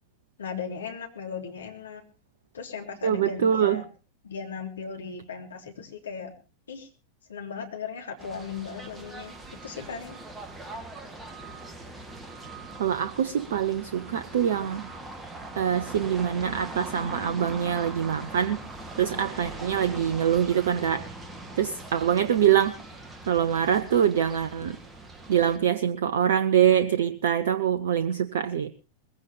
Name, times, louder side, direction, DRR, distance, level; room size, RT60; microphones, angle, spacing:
voice 1, 0.4-2.0 2.5-3.8 4.2-6.3 6.7-6.9 7.3-10.2, left 6 dB, 70° left, 3.4 m, -37 dB
voice 2, 3.0-3.8 12.8-14.9 15.6-18.6 19.0-21.1 21.6-22.7 23.3-24.8 25.3-28.7, right 9 dB, 60° right, 0.7 m, -24 dB
sound 1, 8.2-25.6, right 2 dB, 15° right, 2.5 m, -41 dB
21.0 x 16.0 x 3.3 m
figure-of-eight pair, 90°, 0 cm